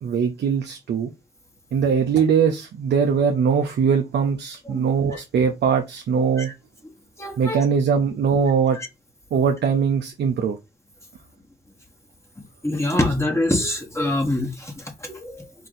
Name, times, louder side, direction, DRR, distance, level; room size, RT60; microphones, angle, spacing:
voice 1, 0.0-1.1 1.7-6.5 7.4-8.8 9.3-10.6, right 6 dB, 85° right, 0.6 m, -21 dB
voice 2, 7.2-7.6 8.7-8.9 12.6-15.7, left 1 dB, 15° left, 1.3 m, -25 dB
4.7 x 2.5 x 4.0 m
cardioid pair, 40°, 17 cm